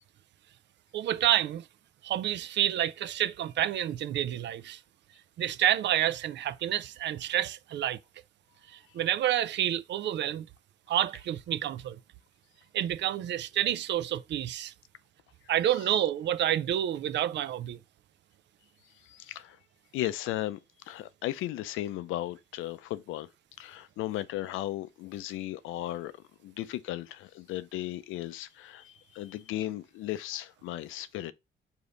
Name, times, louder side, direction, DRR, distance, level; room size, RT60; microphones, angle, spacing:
voice 1, 0.9-1.7 2.0-4.8 5.4-8.0 8.7-10.5 10.9-12.0 12.7-14.7 15.5-17.8, right 11 dB, 65° right, 0.4 m, -29 dB
voice 2, 18.9-19.6 19.9-20.6 20.8-23.3 23.6-26.1 26.4-31.3, left 14 dB, 90° left, 0.5 m, -36 dB
5.0 x 2.8 x 3.8 m
cardioid pair, 90°, 20 cm